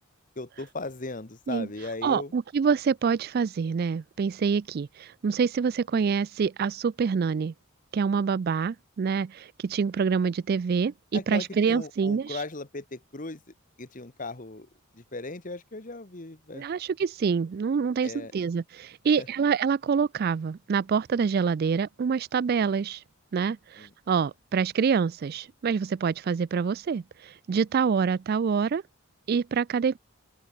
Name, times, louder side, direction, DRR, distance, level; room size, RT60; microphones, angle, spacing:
voice 1, 0.3-2.3 11.1-13.4 13.8-14.7 14.9-16.7 18.0-18.3 19.2-19.3 23.8-23.9, left 2 dB, 35° left, 1.3 m, -37 dB
voice 2, 2.0-7.5 7.9-12.4 16.5-23.0 23.3-28.8 29.3-30.0, right 6 dB, 45° right, 0.3 m, -26 dB
open air
head